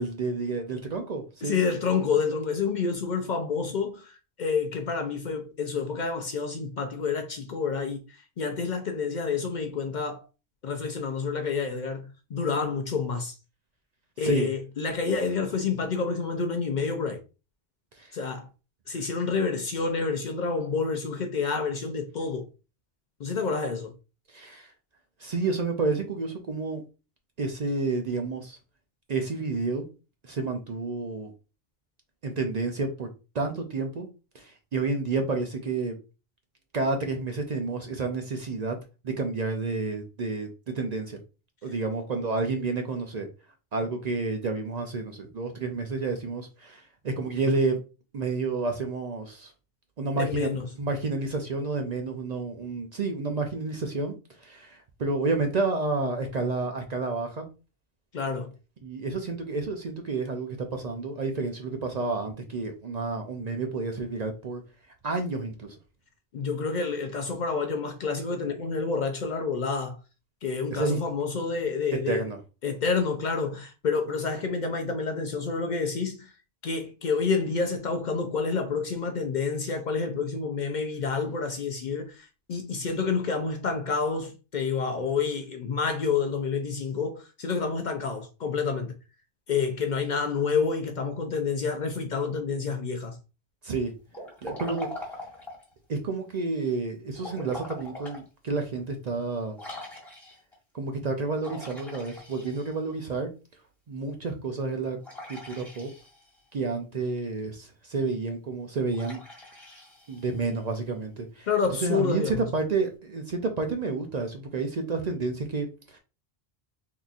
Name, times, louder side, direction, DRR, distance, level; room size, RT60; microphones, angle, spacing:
voice 1, 0.0-1.6 14.2-14.5 18.0-18.1 24.3-24.7 25.2-26.8 27.4-28.6 29.1-29.9 30.2-31.3 32.2-33.1 33.3-34.1 34.3-35.9 36.7-38.8 39.0-41.2 41.6-43.3 43.7-47.8 48.1-49.5 50.0-50.5 50.8-54.1 54.4-57.5 58.8-64.6 65.0-65.8 70.7-71.0 72.1-72.4 93.6-93.9 94.4-94.9 95.9-99.6 100.7-103.3 103.9-105.0 105.3-105.9 106.5-109.2 110.1-111.5 111.8-116.0, right 3 dB, 50° right, 0.6 m, -30 dB
voice 2, 1.4-10.2 10.6-13.4 14.2-17.2 18.1-18.5 18.9-22.5 23.2-23.9 50.2-50.7 58.1-58.5 66.3-70.0 70.4-72.2 72.6-76.3 76.6-88.9 89.5-93.2 111.5-112.5, left 5 dB, 55° left, 0.6 m, -28 dB
Liquid, 94.1-95.7 97.2-98.2 98.7-98.8 99.6-100.5 101.4-103.0 105.0-106.4 108.9-110.6, left 1 dB, ahead, 1.5 m, -42 dB
3.8 x 2.8 x 2.4 m
omnidirectional pair, 1.0 m